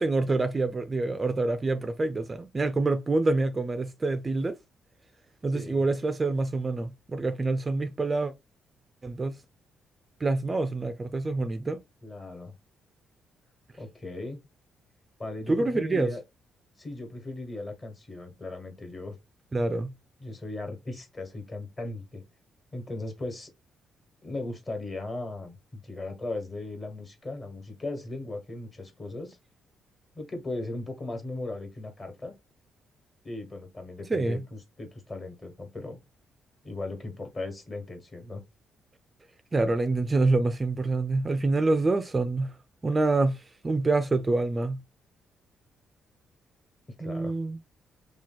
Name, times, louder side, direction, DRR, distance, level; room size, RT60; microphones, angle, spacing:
voice 1, 0.0-4.6 5.4-8.3 9.0-9.4 10.2-11.8 15.5-16.1 19.5-19.9 34.1-34.4 39.5-42.5 42.8-44.8 47.0-47.6, right 3 dB, 25° right, 0.4 m, -26 dB
voice 2, 5.5-5.9 12.0-12.5 13.8-14.4 15.2-16.2 16.8-19.2 20.2-22.2 22.7-23.5 24.2-29.4 30.1-32.3 33.2-34.4 34.8-36.0 36.6-38.4 47.0-47.3, left 2 dB, 30° left, 1.3 m, -37 dB
3.0 x 2.3 x 3.8 m
cardioid pair, 90°, 0 cm